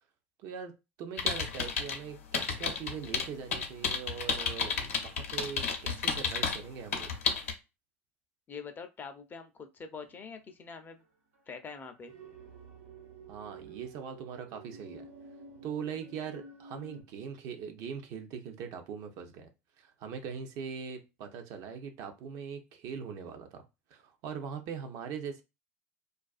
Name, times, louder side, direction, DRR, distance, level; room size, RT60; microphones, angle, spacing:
voice 1, 0.4-7.1 13.3-15.1 15.6-19.5 19.8-25.4, right 7 dB, 55° right, 0.6 m, -41 dB
sound 1, 1.2-2.0 2.3-6.6 6.9-7.5, left 6 dB, 80° left, 0.6 m, -31 dB
voice 2, 8.5-11.0 11.5-12.1, left 5 dB, 25° left, 0.5 m, -44 dB
sound 2, 10.0-10.3 11.0-11.1 11.3-11.4 11.7-17.0, right 4 dB, 85° right, 1.1 m, -50 dB
2.4 x 2.3 x 2.4 m
hypercardioid pair, 85°, 7 cm